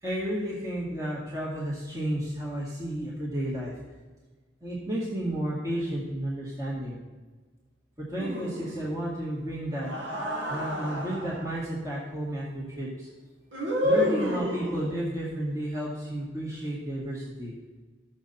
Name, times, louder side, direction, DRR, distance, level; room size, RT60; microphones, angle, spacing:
voice 1, 0.0-3.7 4.6-7.0 8.0-9.9 10.5-13.1 13.8-17.5, right 1 dB, 20° right, -6 dB, 2.0 m, -32 dB
sound 1, 8.2-9.0 9.7-11.5 13.5-15.0, equal, 85° right, 2.0 m, -30 dB
14.5 x 6.7 x 4.3 m, 1.3 s
head